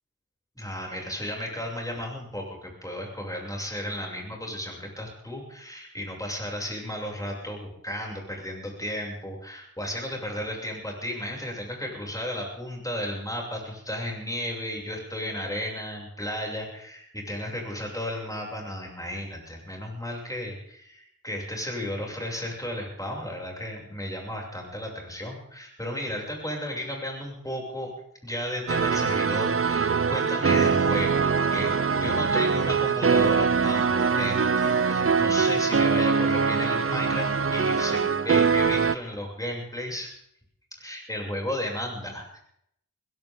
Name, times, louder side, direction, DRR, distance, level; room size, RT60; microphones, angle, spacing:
voice 1, 0.6-27.9 28.2-31.7 31.9-40.1 40.8-42.4, equal, 10° left, -2 dB, 7.0 m, -34 dB
sound 1, 28.7-39.0, right 5 dB, 40° right, 0.6 m, -23 dB
21.5 x 17.0 x 3.8 m, 0.73 s
wide cardioid pair, 60°, 35 cm